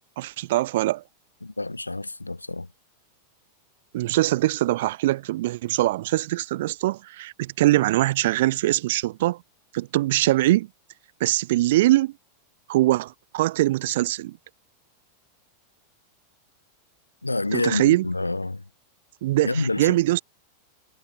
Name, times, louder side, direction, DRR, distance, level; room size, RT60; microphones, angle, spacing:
voice 1, 0.2-1.0 3.9-9.4 9.7-10.7 11.2-12.1 12.7-14.4 17.5-18.1 19.2-20.2, right 16 dB, 55° right, 0.4 m, -22 dB
voice 2, 1.4-2.7 17.2-18.6 19.4-20.0, left 2 dB, 85° left, 0.5 m, -28 dB
figure-of-eight pair, 90°, 0 cm